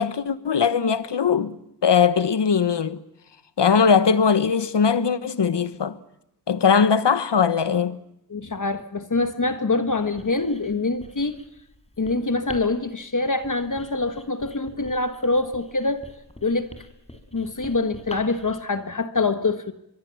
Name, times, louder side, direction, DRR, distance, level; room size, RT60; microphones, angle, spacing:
voice 1, 0.0-1.5 1.8-3.0 3.6-6.0 6.5-8.0, left 6 dB, 75° left, 1.2 m, -20 dB
voice 2, 8.3-11.4 12.0-16.0 16.4-16.7 17.3-19.7, left 3 dB, 45° left, 1.5 m, -25 dB
Writing, 10.0-18.6, left 1 dB, 15° left, 4.5 m, -46 dB
24.5 x 22.5 x 7.1 m
wide cardioid pair, 65°, 42 cm